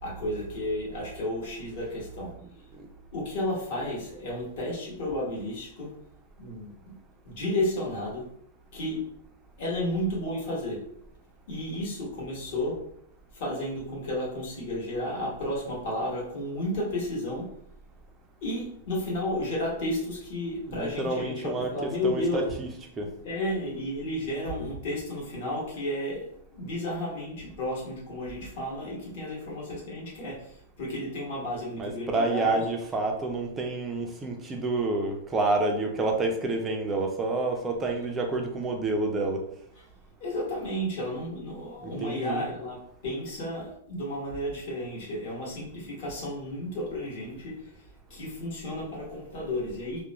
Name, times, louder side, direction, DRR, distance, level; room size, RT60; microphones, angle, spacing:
voice 1, 0.0-2.3 3.1-5.9 6.4-6.9 7.2-8.3 8.7-9.1 9.6-10.8 11.5-12.8 13.3-17.5 18.4-22.5 23.2-32.6 40.2-47.7 48.1-50.0, left 1 dB, 45° left, -4 dB, 1.0 m, -32 dB
voice 2, 20.7-23.1 31.8-39.5 41.8-42.4, right 2 dB, 10° right, 2 dB, 0.3 m, -29 dB
2.4 x 2.1 x 2.9 m, 0.70 s
supercardioid pair, 175°, 0 cm